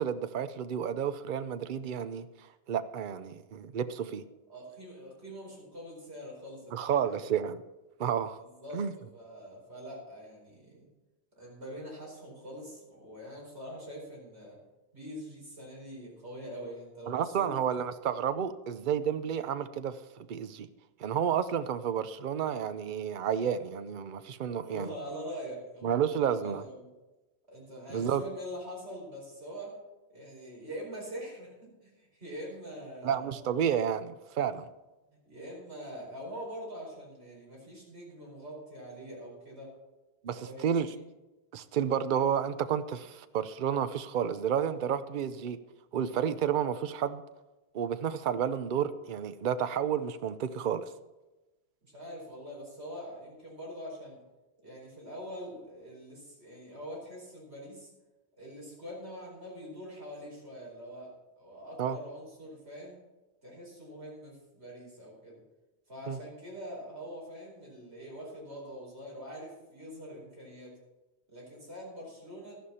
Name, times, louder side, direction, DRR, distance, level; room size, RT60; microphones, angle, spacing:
voice 1, 0.0-2.3 2.7-4.2 6.7-7.6 8.0-8.4 8.7-8.9 17.1-20.0 20.3-20.7 21.0-24.9 25.8-26.6 27.9-28.2 33.0-34.7 40.2-40.9 41.5-45.6 45.9-47.2 47.7-50.9 61.8-62.0 66.1-66.2, right 8 dB, 55° right, 12 dB, 0.8 m, -31 dB
voice 2, 4.5-7.3 8.4-10.9 11.4-14.6 14.9-17.5 18.7-19.0 24.6-26.0 26.3-26.9 27.5-29.8 30.1-33.4 35.3-39.7 40.3-41.0 51.8-54.2 54.6-57.9 58.4-63.0 63.4-65.4 65.9-70.7 71.3-72.6, equal, 80° right, -4 dB, 5.0 m, -44 dB
13.0 x 11.5 x 4.3 m, 1.1 s
omnidirectional pair, 1.1 m